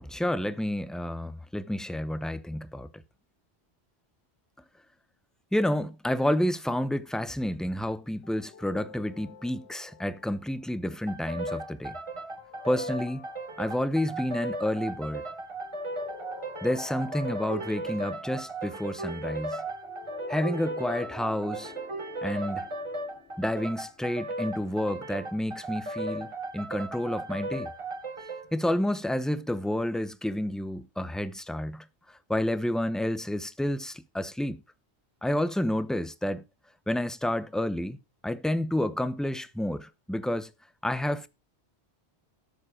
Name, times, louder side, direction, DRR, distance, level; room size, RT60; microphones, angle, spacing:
voice 1, 0.0-2.9 5.5-12.0 12.6-13.3 13.6-15.2 16.6-19.6 20.3-21.7 22.2-22.7 23.4-27.7 28.5-34.6 35.2-36.4 36.9-38.0 38.2-40.5 40.8-41.3, left 1 dB, ahead, 0.6 m, -30 dB
sound 1, 8.2-10.7 12.4-14.2 15.6-18.3 19.7-24.2, left 7 dB, 80° left, 1.1 m, -48 dB
sound 2, 11.1-28.5, right 2 dB, 30° right, 1.0 m, -36 dB
13.0 x 7.3 x 4.8 m
omnidirectional pair, 1.1 m